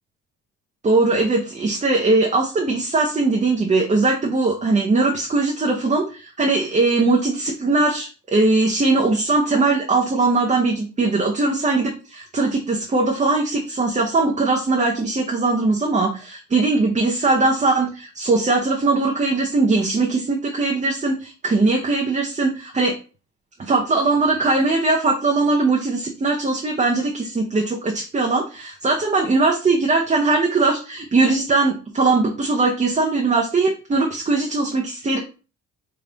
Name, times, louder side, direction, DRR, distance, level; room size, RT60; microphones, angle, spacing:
voice 1, 0.8-23.0 23.6-35.2, right 3 dB, 25° right, 0 dB, 0.7 m, -20 dB
3.5 x 2.3 x 3.8 m, 0.34 s
cardioid pair, 90°, 30 cm